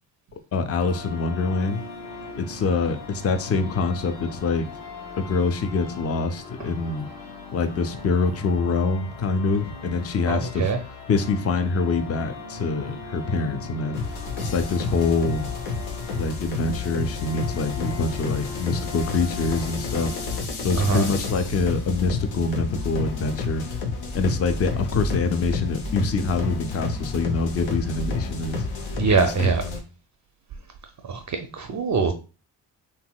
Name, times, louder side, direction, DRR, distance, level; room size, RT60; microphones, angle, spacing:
voice 1, 0.5-1.8 2.4-4.7 5.2-7.1 7.5-10.7 11.1-14.0 14.4-15.5 16.1-20.1 20.6-23.6 24.1-28.6 29.2-29.5, left 4 dB, 30° left, 0.5 m, -25 dB
sound 1, 0.8-20.4, left 3 dB, 50° left, 1.3 m, -39 dB
voice 2, 10.3-10.8 20.7-21.1 28.9-29.6 31.1-32.1, right 5 dB, 40° right, 0.5 m, -23 dB
sound 2, 13.9-29.8, left 4 dB, 75° left, 0.8 m, -30 dB
3.0 x 2.7 x 2.2 m
supercardioid pair, 45°, 48 cm